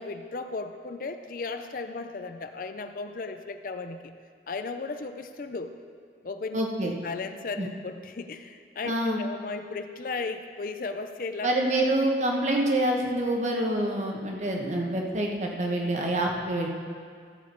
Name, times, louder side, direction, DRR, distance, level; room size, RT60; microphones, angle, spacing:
voice 1, 0.0-4.1 4.5-5.7 6.2-11.5, left 3 dB, 50° left, 8 dB, 0.5 m, -35 dB
voice 2, 6.5-6.9 7.6-7.7 8.8-9.2 11.4-16.7, right 1 dB, 40° right, 0 dB, 1.2 m, -26 dB
14.0 x 7.2 x 4.5 m, 2.3 s
head